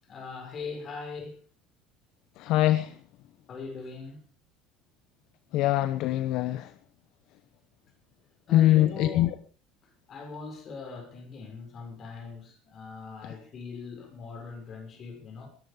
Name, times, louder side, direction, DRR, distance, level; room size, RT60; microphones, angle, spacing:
voice 1, 0.1-1.4 3.5-4.3 8.5-9.4 10.1-15.5, left 4 dB, 35° left, 6.4 m, -40 dB
voice 2, 2.4-2.9 5.5-6.7 8.5-9.3, left 14 dB, 60° left, 0.9 m, -23 dB
20.0 x 13.0 x 5.2 m
cardioid pair, 140°, 0 cm